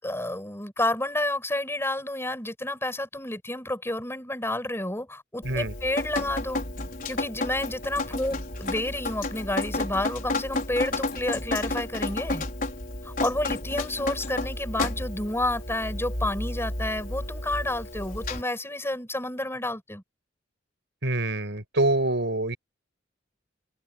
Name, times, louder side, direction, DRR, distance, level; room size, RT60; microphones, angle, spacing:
voice 1, 0.0-6.6 7.1-12.5 13.0-20.0, left 1 dB, 15° left, 7.9 m, -30 dB
Drip, 5.4-18.4, left 2 dB, 45° left, 5.3 m, -32 dB
voice 2, 5.4-5.7 21.0-22.6, right 2 dB, 65° right, 6.4 m, -25 dB
head